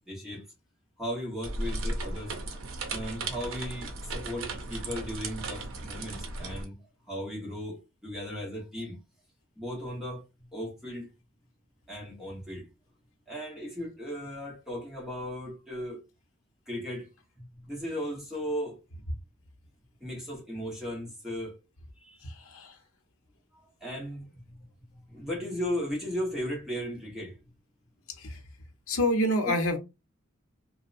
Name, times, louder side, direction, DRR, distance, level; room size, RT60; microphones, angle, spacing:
voice 1, 0.1-0.4 1.0-2.3 2.9-6.8 7.1-9.0 9.6-10.2 10.5-11.1 11.9-12.7 13.3-16.0 16.7-17.1 17.4-18.8 20.0-21.6 22.0-22.2 23.8-27.4 29.5-29.6, equal, ahead, 1.0 m, -36 dB
sound 1, 1.4-6.7, right 2 dB, 75° right, 0.6 m, -36 dB
voice 2, 22.2-22.8 28.2-28.4 28.9-29.8, equal, 85° left, 0.7 m, -27 dB
2.6 x 2.1 x 2.5 m
head